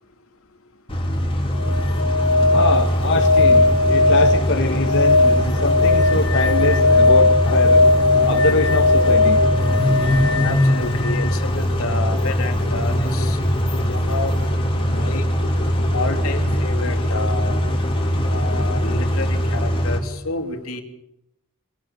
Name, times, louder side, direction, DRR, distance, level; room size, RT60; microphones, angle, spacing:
Car / Idling / Accelerating revving vroom, 0.9-20.0, equal, 25° left, 4.1 m, -21 dB
sound 1, 1.5-11.3 13.7-13.8, left 3 dB, 90° left, 3.3 m, -18 dB
voice 1, 2.5-7.9 8.3-9.4 10.0-10.2, left 2 dB, 55° left, 1 dB, 2.1 m, -24 dB
voice 2, 10.4-13.4 13.8-14.3 14.8-15.3 15.9-17.6 18.3-20.8, left 3 dB, 75° left, 5 dB, 3.2 m, -29 dB
25.5 x 18.0 x 7.3 m, 0.82 s
head